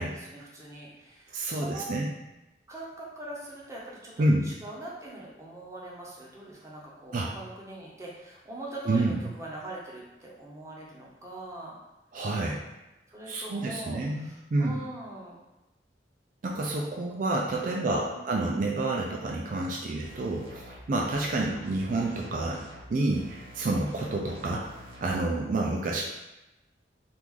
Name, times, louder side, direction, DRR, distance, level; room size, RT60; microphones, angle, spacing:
voice 1, 0.0-1.9 2.7-11.8 13.1-15.4 17.6-18.4 25.5-26.0, right 1 dB, 15° right, -4 dB, 0.7 m, -42 dB
voice 2, 1.3-2.1 4.2-4.5 7.1-7.3 8.8-9.2 12.1-12.6 13.3-14.8 16.4-24.7 25.0-26.0, right 2 dB, 50° right, -2 dB, 0.4 m, -29 dB
sound 1, 20.0-20.8 21.1-22.8 23.1-25.1, equal, 90° right, 1.0 m, -48 dB
3.1 x 2.5 x 3.6 m, 0.97 s
head